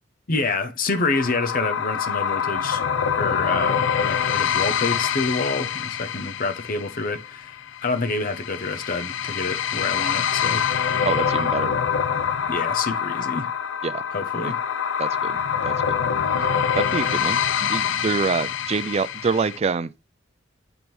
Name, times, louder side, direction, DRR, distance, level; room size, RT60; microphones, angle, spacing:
voice 1, 0.3-2.8 3.1-10.7 12.5-13.5 14.1-14.6, left 3 dB, 50° left, 0.9 m, -27 dB
sound 1, 0.9-19.6, left 7 dB, 85° left, 0.5 m, -25 dB
voice 2, 11.0-11.7 13.8-14.0 14.4-14.5 15.0-16.1 16.5-19.9, right 5 dB, 35° right, 0.4 m, -26 dB
8.0 x 3.6 x 6.1 m
head